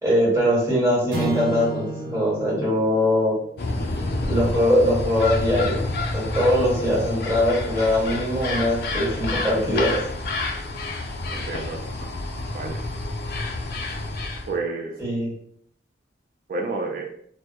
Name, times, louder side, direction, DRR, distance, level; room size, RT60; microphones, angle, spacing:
voice 1, 0.0-3.3 4.3-5.8 6.1-10.0 15.0-15.3, equal, 15° right, -7 dB, 1.0 m, -21 dB
sound 1, 1.1-5.6, right 1 dB, 70° right, 0.8 m, -34 dB
sound 2, 3.6-14.6, left 2 dB, 55° left, 0.3 m, -29 dB
voice 2, 11.3-12.1 12.5-12.8 14.5-15.0 16.5-17.1, right 3 dB, 50° right, 0 dB, 0.3 m, -30 dB
2.2 x 2.0 x 2.8 m, 0.66 s
head